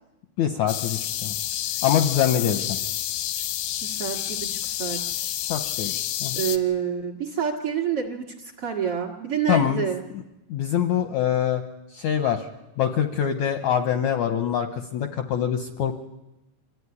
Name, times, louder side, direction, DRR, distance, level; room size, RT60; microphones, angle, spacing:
voice 1, 0.4-1.3 1.8-2.8 5.5-5.9 6.2-6.4 9.5-9.8 10.1-10.2 10.5-11.6 11.9-12.5 12.8-16.0, left 9 dB, 70° left, 7 dB, 1.8 m, -24 dB
sound 1, 0.7-6.6, left 12 dB, 90° left, 3.0 m, -29 dB
voice 2, 3.8-5.3 6.3-10.0, right 7 dB, 45° right, 6 dB, 2.1 m, -28 dB
25.5 x 14.5 x 9.7 m, 1.0 s
omnidirectional pair, 4.5 m